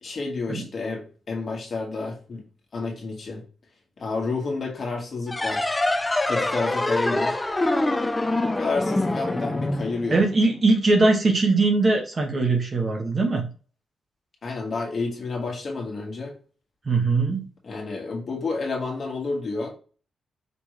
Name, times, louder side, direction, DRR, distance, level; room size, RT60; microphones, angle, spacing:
voice 1, 0.0-2.4 2.7-3.4 4.0-5.8 6.2-7.4 8.4-10.2 14.4-16.3 17.6-19.7, left 3 dB, 45° left, 0 dB, 1.6 m, -30 dB
sound 1, 5.3-10.5, left 2 dB, 15° left, 0.5 m, -25 dB
voice 2, 10.1-13.5 16.8-17.5, right 3 dB, 30° right, 2 dB, 0.9 m, -21 dB
5.3 x 3.1 x 3.2 m, 0.38 s
wide cardioid pair, 140°, 0 cm